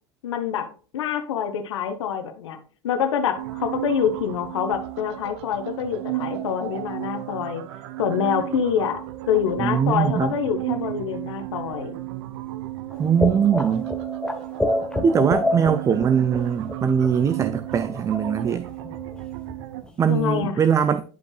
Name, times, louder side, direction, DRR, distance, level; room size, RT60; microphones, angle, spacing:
voice 1, 0.2-0.7 0.9-2.6 2.8-7.6 8.0-9.0 9.3-12.0 20.1-20.6, left 8 dB, 80° left, 1.0 m, -26 dB
sound 1, 3.4-19.8, right 16 dB, 70° right, 0.7 m, -33 dB
voice 2, 9.6-10.3 13.0-13.9 15.0-18.7 20.0-21.0, right 7 dB, 20° right, 0.3 m, -21 dB
sound 2, 12.9-16.8 17.0-17.1 17.4-18.5 18.8-19.2 19.5-19.6 19.8-19.9 20.2-20.5, left 1 dB, 5° left, 1.0 m, -28 dB
10.5 x 5.2 x 2.3 m
hypercardioid pair, 100°, 15 cm